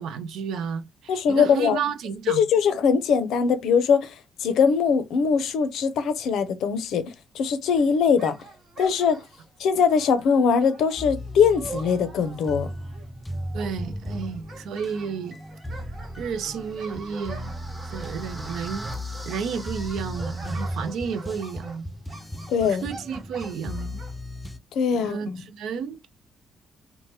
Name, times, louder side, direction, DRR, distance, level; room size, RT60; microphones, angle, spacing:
voice 1, 0.0-2.4 13.5-15.4 16.2-17.5 17.9-18.9 19.2-21.9 22.7-24.0 25.0-26.1, right 6 dB, 80° right, 0.4 m, -32 dB
voice 2, 1.1-1.8 2.3-4.1 4.4-7.0 7.3-8.3 8.8-9.2 9.6-12.7 22.5-22.9 24.7-25.4, left 6 dB, 80° left, 0.5 m, -21 dB
sound 1, 7.8-24.2, right 3 dB, 55° right, 1.0 m, -44 dB
sound 2, 11.0-24.6, equal, 10° left, 0.3 m, -36 dB
sound 3, 16.3-21.4, right 1 dB, 10° right, 0.9 m, -43 dB
3.1 x 2.1 x 2.8 m
cardioid pair, 90°, 0 cm